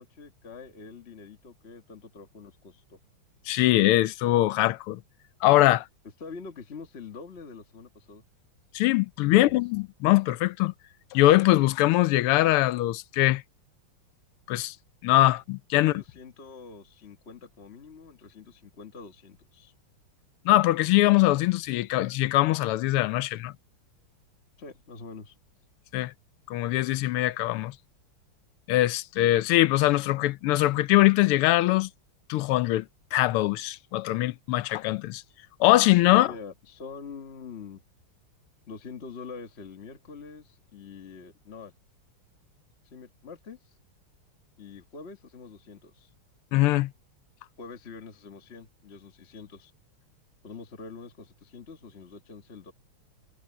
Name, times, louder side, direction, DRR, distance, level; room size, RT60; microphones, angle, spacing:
voice 1, 0.0-3.0 6.2-8.2 9.2-9.6 15.7-19.7 24.6-25.3 36.1-37.8 38.7-41.7 42.9-43.7 44.6-46.1 47.6-49.7 50.4-52.7, left 5 dB, 30° left, 1.6 m, -45 dB
voice 2, 3.5-5.0 5.4-5.8 8.7-10.7 11.1-13.4 14.5-14.7 15.0-15.9 20.4-23.5 25.9-26.1 26.5-27.7 28.7-31.9 32.3-32.8 33.1-35.2 35.6-36.3 46.5-46.9, left 16 dB, 85° left, 1.6 m, -22 dB
omnidirectional pair, 2.4 m